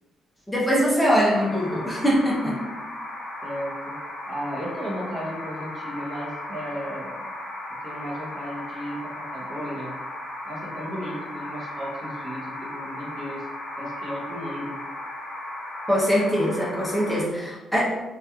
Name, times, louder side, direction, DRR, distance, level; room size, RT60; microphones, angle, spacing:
voice 1, 0.5-2.6 15.9-17.8, equal, 5° left, -6 dB, 0.5 m, -22 dB
sound 1, 1.1-17.2, left 1 dB, 70° left, 0.6 m, -36 dB
voice 2, 3.4-3.9 4.3-7.2 7.8-10.0 10.4-13.5 13.8-14.8, equal, 40° right, -3 dB, 0.7 m, -34 dB
2.8 x 2.3 x 2.2 m, 1.1 s
cardioid pair, 145°, 0 cm